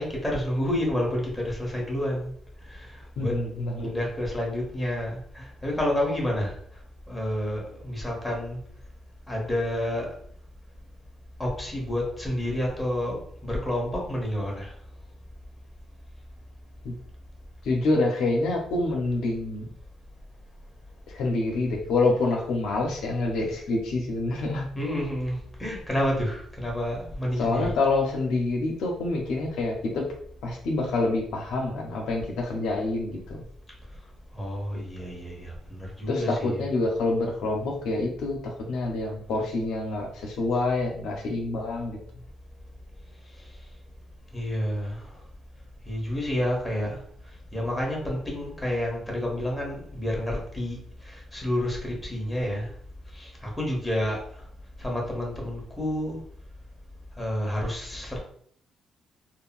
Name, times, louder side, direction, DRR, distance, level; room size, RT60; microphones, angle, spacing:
voice 1, 0.0-2.3 3.2-3.3 3.8-6.5 7.1-8.6 9.3-10.1 11.4-14.7 24.7-27.7 34.3-36.7 44.3-45.0 45.9-47.0 47.5-50.8 51.3-52.6 53.2-53.3 53.6-54.2 54.8-56.2 57.2-58.2, left 1 dB, 10° left, -2 dB, 1.2 m, -29 dB
voice 2, 3.2-3.9 16.8-16.9 17.6-19.7 21.1-24.7 27.4-30.0 30.4-33.2 36.1-42.0, left 2 dB, 80° left, 1 dB, 0.6 m, -27 dB
3.6 x 2.1 x 2.4 m, 0.62 s
cardioid pair, 90°, 0 cm